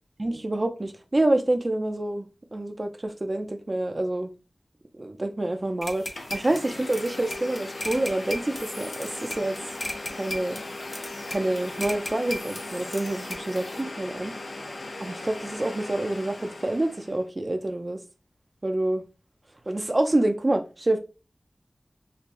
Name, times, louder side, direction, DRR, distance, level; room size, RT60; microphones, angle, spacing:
voice 1, 0.2-4.3 5.0-6.1 6.3-9.6 10.1-10.6 11.3-14.3 15.0-18.0 18.6-19.0 19.7-21.0, right 1 dB, 45° right, 0.8 m, -27 dB
Domestic sounds home sounds, 5.7-5.8 6.1-17.2, left 2 dB, 90° left, 0.9 m, -38 dB
sound 1, 5.8-13.8, left 1 dB, 50° left, 1.3 m, -38 dB
6.5 x 2.8 x 2.3 m
wide cardioid pair, 50°, 0 cm